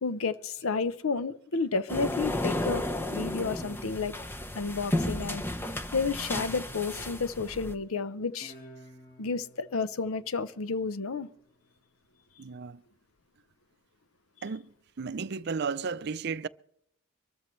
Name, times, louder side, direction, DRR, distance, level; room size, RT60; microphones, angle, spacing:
voice 1, 0.0-4.1 4.5-5.4 5.9-8.5 9.2-11.3, left 4 dB, 85° left, 0.7 m, -31 dB
sound 1, 1.9-7.7, left 1 dB, 10° left, 0.8 m, -33 dB
Guitar, 8.4-11.6, right 1 dB, 50° left, 5.3 m, -53 dB
voice 2, 12.4-12.8 14.4-14.7 15.0-16.5, right 5 dB, 50° right, 0.5 m, -33 dB
24.5 x 13.5 x 3.2 m
head